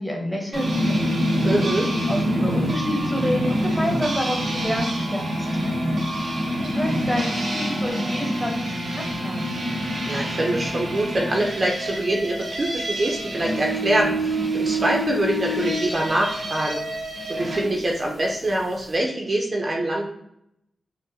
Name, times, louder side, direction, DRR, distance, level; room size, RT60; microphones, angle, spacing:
voice 1, 0.0-1.3 2.1-5.8 6.6-9.6, equal, 5° left, 0 dB, 0.9 m, -29 dB
sound 1, 0.5-17.7, equal, 90° right, 1.0 m, -26 dB
voice 2, 1.4-1.9 10.1-16.8 17.3-20.1, right 1 dB, 40° right, -1 dB, 0.5 m, -24 dB
3.8 x 2.1 x 2.7 m, 0.78 s
wide cardioid pair, 90°, 0 cm